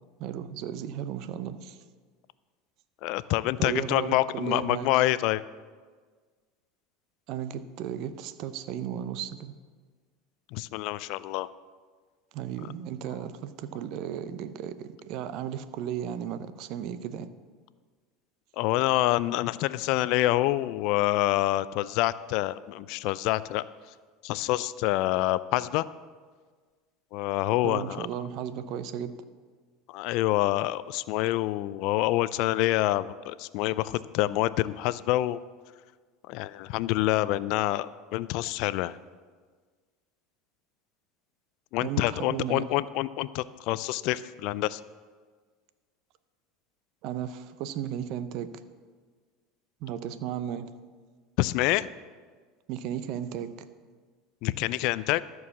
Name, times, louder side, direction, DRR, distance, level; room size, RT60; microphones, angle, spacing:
voice 1, 0.2-1.8 3.6-4.9 7.3-9.5 12.3-17.3 27.6-29.2 41.8-42.6 47.0-48.5 49.8-50.7 52.7-53.7, right 9 dB, 60° right, 13 dB, 0.7 m, -35 dB
voice 2, 3.0-5.4 10.5-11.5 18.6-23.6 24.2-25.9 27.1-28.1 29.9-35.4 36.3-39.0 41.7-44.8 51.4-51.9 54.4-55.2, left 16 dB, 65° left, 17 dB, 0.4 m, -27 dB
13.5 x 4.7 x 7.1 m, 1.5 s
supercardioid pair, 100°, 0 cm